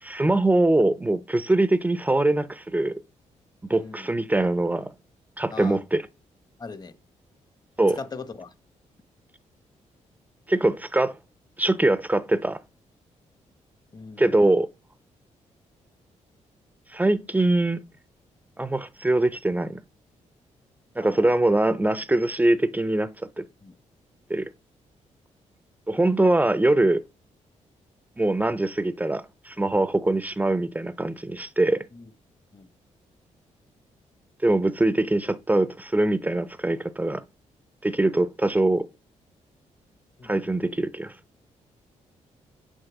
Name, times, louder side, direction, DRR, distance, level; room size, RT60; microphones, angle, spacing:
voice 1, 0.0-2.9 3.7-4.9 5.4-6.0 7.8-8.0 10.5-11.2 11.6-12.6 14.2-14.7 16.9-17.8 18.6-19.8 21.0-23.4 24.3-24.5 25.9-27.0 28.2-31.9 34.4-37.2 37.8-38.9 40.2-41.1, right 2 dB, 10° right, 0.6 m, -23 dB
voice 2, 3.7-4.1 5.5-5.8 6.6-6.9 7.9-8.5 13.9-14.4 21.0-21.3 23.6-23.8 31.9-32.1 32.5-32.7 40.2-40.5, left 4 dB, 30° left, 1.0 m, -40 dB
7.4 x 6.5 x 6.0 m
cardioid pair, 90°, 13 cm